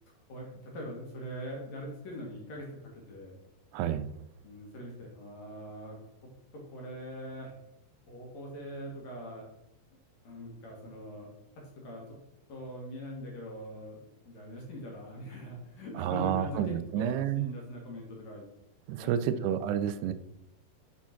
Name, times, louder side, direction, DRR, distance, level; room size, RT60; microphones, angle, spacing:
voice 1, 0.3-2.7 3.1-3.3 4.4-6.0 6.5-7.5 8.1-9.4 10.2-11.3 11.8-12.0 12.5-18.4 19.0-19.4, equal, 50° left, -1 dB, 2.5 m, -42 dB
voice 2, 3.7-4.1 16.0-17.5 18.9-20.1, right 9 dB, 80° right, 12 dB, 2.6 m, -30 dB
8.3 x 4.4 x 5.9 m, 0.83 s
omnidirectional pair, 4.8 m